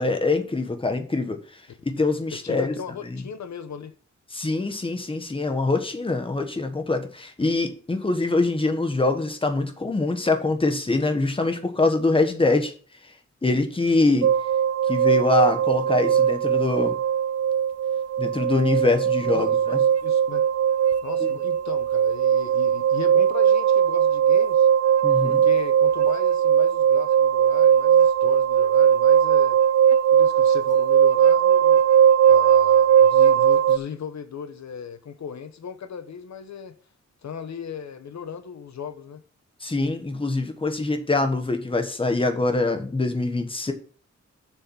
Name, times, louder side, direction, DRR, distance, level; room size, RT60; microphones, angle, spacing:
voice 1, 0.0-1.4 1.9-2.7 3.1-3.2 4.3-12.7 13.4-14.3 14.9-17.0 18.2-19.8 21.2-21.3 25.0-25.4 39.6-43.7, left 3 dB, 20° left, 1.2 m, -24 dB
voice 2, 2.3-3.9 19.3-20.5 21.0-24.7 25.2-29.6 30.1-31.8 32.3-36.7 37.2-39.2, left 7 dB, 70° left, 0.9 m, -37 dB
sound 1, 14.2-33.8, right 8 dB, 55° right, 0.6 m, -19 dB
7.2 x 7.0 x 5.5 m
wide cardioid pair, 170°, 29 cm